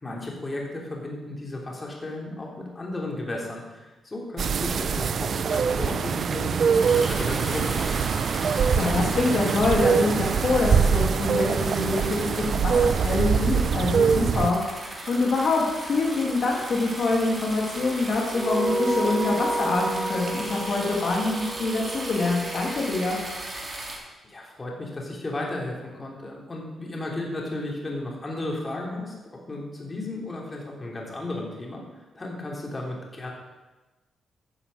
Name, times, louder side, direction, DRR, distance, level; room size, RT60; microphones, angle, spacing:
voice 1, 0.0-7.9 24.2-33.3, left 2 dB, 25° left, -1 dB, 2.9 m, -34 dB
sound 1, 4.4-14.5, right 6 dB, 55° right, 0.5 m, -23 dB
sound 2, 6.8-24.0, right 1 dB, 25° right, 3.1 m, -37 dB
voice 2, 8.5-23.2, left 3 dB, 55° left, -2 dB, 2.4 m, -25 dB
sound 3, 18.3-23.1, right 1 dB, 5° right, 1.5 m, -30 dB
11.0 x 7.0 x 7.6 m, 1.1 s
cardioid pair, 100°, 0 cm